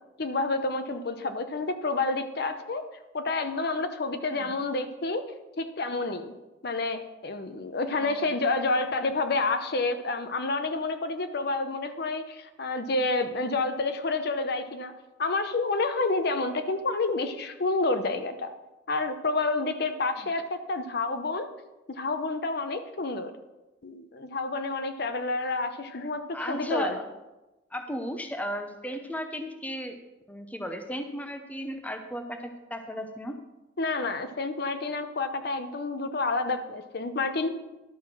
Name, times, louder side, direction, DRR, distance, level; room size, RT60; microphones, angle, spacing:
voice 1, 0.2-2.8 3.1-5.3 5.6-6.3 6.6-14.9 15.2-18.5 18.9-21.5 21.9-23.3 23.8-27.0 33.8-37.6, left 3 dB, 55° left, 8 dB, 0.7 m, -29 dB
voice 2, 8.0-8.3 20.2-20.3 26.3-26.9 27.7-30.0 30.3-33.4, equal, 10° left, 6 dB, 0.7 m, -35 dB
11.5 x 5.7 x 6.1 m, 1.0 s
head